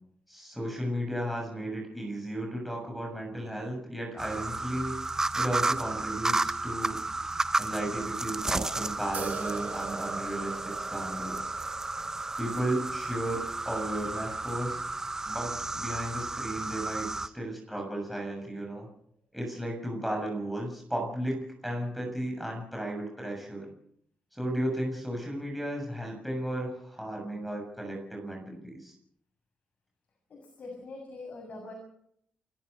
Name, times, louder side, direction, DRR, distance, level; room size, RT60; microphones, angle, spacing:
voice 1, 0.3-7.0 7.6-11.6 12.4-18.9 19.3-23.7 24.3-28.9, right 1 dB, ahead, -1 dB, 7.0 m, -34 dB
sound 1, 4.2-17.3, right 2 dB, 20° right, 0.9 m, -32 dB
sound 2, 9.1-16.3, right 5 dB, 55° right, 3.8 m, -45 dB
voice 2, 30.3-31.7, left 3 dB, 55° left, 2 dB, 7.0 m, -43 dB
29.0 x 13.5 x 6.8 m, 0.70 s
cardioid pair, 105°, 3 cm